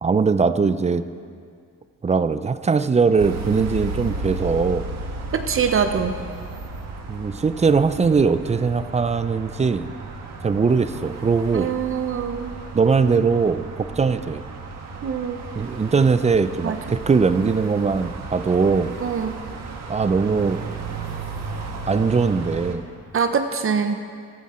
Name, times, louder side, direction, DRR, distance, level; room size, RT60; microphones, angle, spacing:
voice 1, 0.0-1.1 2.0-4.9 7.1-9.9 10.4-11.7 12.7-14.4 15.6-19.0 19.9-20.6 21.9-22.9, right 5 dB, 20° right, 12 dB, 0.5 m, -20 dB
sound 1, 3.2-22.8, right 3 dB, 60° right, 1.6 m, -34 dB
voice 2, 5.3-6.2 11.5-12.5 15.0-15.4 16.6-17.0 19.0-19.4 23.1-24.0, right 6 dB, 45° right, 7 dB, 0.8 m, -24 dB
15.0 x 12.5 x 4.4 m, 2.1 s
cardioid pair, 90°, 30 cm